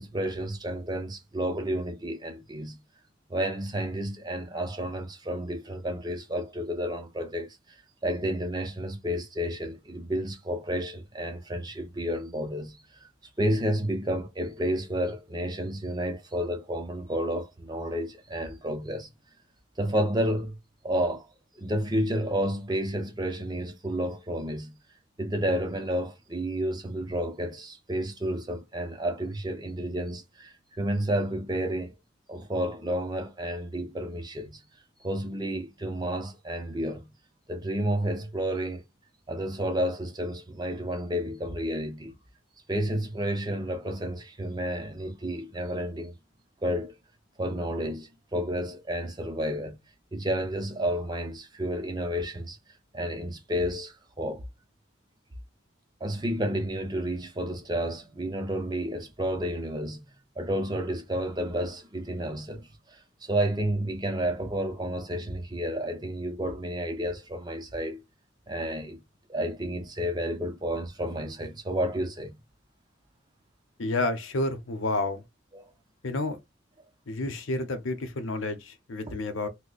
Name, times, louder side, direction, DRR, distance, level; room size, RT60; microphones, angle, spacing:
voice 1, 0.0-2.8 3.3-7.6 8.0-13.1 13.4-19.1 19.8-20.6 20.8-21.3 21.6-24.8 25.2-31.9 32.3-34.6 35.0-37.1 37.5-38.8 39.3-42.1 42.7-46.1 46.6-47.0 47.4-49.8 50.1-52.6 52.9-54.4 56.0-60.1 60.4-68.0 68.5-69.0 69.3-72.4 75.5-75.7 79.1-79.2, equal, 20° right, 0.6 m, -31 dB
voice 2, 73.8-75.2 76.0-76.4 77.1-79.5, left 2 dB, 85° left, 0.7 m, -30 dB
2.8 x 2.1 x 3.9 m
head